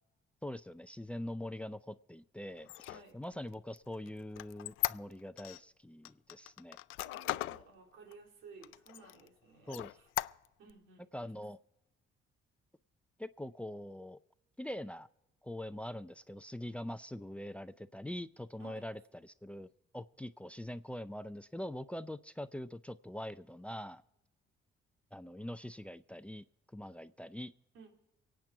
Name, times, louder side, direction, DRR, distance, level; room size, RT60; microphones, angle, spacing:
voice 1, 0.4-6.8 9.7-9.9 11.1-11.6 13.2-14.2 14.6-15.1 15.4-19.7 19.9-24.0 25.1-26.4 26.7-27.5, left 1 dB, 5° left, 15 dB, 0.5 m, -43 dB
Squeak, 2.6-5.6 6.0-7.6 8.1-8.2 8.6-9.3 9.7-10.7, left 17 dB, 85° left, 0.4 m, -38 dB
voice 2, 7.0-10.1 10.6-11.4 18.6-18.8 27.7-27.9, right 5 dB, 90° right, 2 dB, 3.0 m, -56 dB
23.5 x 9.0 x 4.5 m, 0.89 s
cardioid pair, 90°, 20 cm